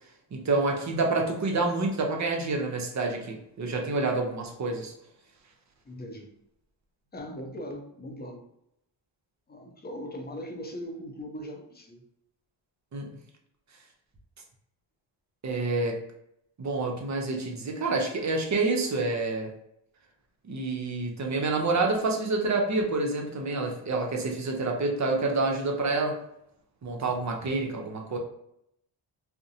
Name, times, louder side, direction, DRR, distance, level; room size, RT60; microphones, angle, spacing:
voice 1, 0.3-4.9 12.9-13.1 15.4-16.0 16.6-19.5 20.5-26.2 26.8-28.2, right 3 dB, 40° right, 2 dB, 0.6 m, -28 dB
voice 2, 5.8-6.3 7.1-8.4 9.5-12.0, equal, 20° left, 3 dB, 0.6 m, -39 dB
2.5 x 2.0 x 2.7 m, 0.76 s
cardioid pair, 60°, 46 cm